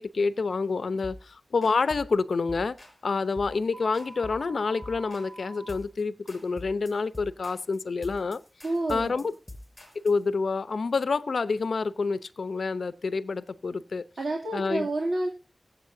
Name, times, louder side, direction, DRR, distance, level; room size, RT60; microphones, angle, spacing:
voice 1, 0.0-2.8 3.0-8.4 8.9-9.3 10.0-14.0 14.5-14.9, left 4 dB, 75° left, 0.7 m, -28 dB
sound 1, 1.0-1.3 1.6-2.1 2.5-3.0 3.4-3.6 3.9-4.5 4.8-5.3 5.7-6.0 6.3-10.2, left 1 dB, 10° left, 5.0 m, -45 dB
sound 2, 3.7-5.7, right 2 dB, 45° right, 2.7 m, -46 dB
voice 2, 8.6-9.2 14.2-15.3, right 2 dB, 65° right, 2.7 m, -29 dB
23.5 x 8.3 x 2.7 m
wide cardioid pair, 100°, 0 cm